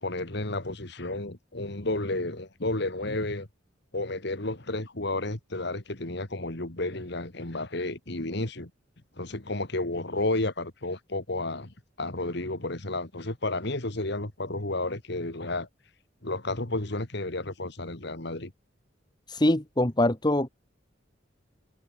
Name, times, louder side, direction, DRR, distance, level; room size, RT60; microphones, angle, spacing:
voice 1, 0.0-3.5 3.9-8.7 9.2-15.7 16.2-18.5, left 2 dB, 60° left, 2.5 m, -32 dB
voice 2, 19.3-20.5, left 1 dB, 20° left, 1.7 m, -23 dB
head